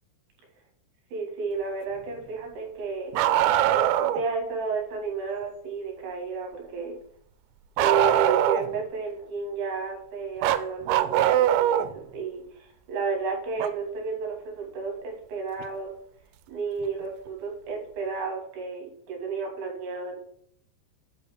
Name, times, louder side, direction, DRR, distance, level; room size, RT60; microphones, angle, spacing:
voice 1, 1.1-3.2 3.7-7.0 7.8-15.9 16.5-20.2, right 5 dB, 65° right, 1 dB, 3.2 m, -32 dB
Bark, 3.1-4.2 7.8-8.8 10.4-11.9 13.6-13.7 15.6-15.7 16.8-16.9, right 12 dB, 85° right, 3.1 m, -22 dB
8.8 x 4.1 x 5.8 m, 0.66 s
omnidirectional pair, 5.8 m